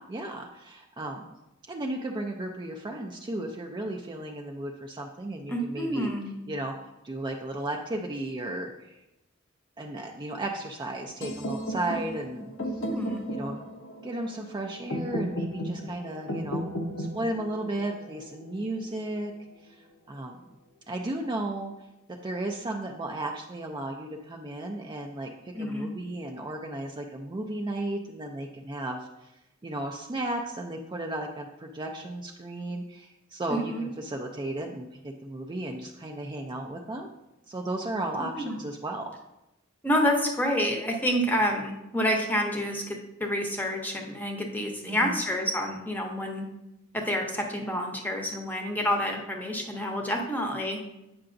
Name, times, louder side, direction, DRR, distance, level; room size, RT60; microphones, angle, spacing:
voice 1, 0.1-1.2 1.7-6.1 6.5-6.7 7.0-9.0 9.8-12.5 13.3-13.7 14.0-16.7 17.0-19.3 19.6-19.8 20.1-20.4 20.9-21.7 22.1-29.3 29.6-37.1 37.5-39.1 44.9-45.2, right 1 dB, 20° right, 2 dB, 0.4 m, -34 dB
voice 2, 5.5-6.4 12.6-13.2 25.5-25.9 33.5-33.8 38.4-38.6 39.8-46.5 46.9-50.8, equal, 10° left, 2 dB, 0.7 m, -28 dB
sound 1, 11.2-19.1, equal, 85° left, 0.8 m, -35 dB
8.6 x 5.7 x 2.6 m, 0.94 s
head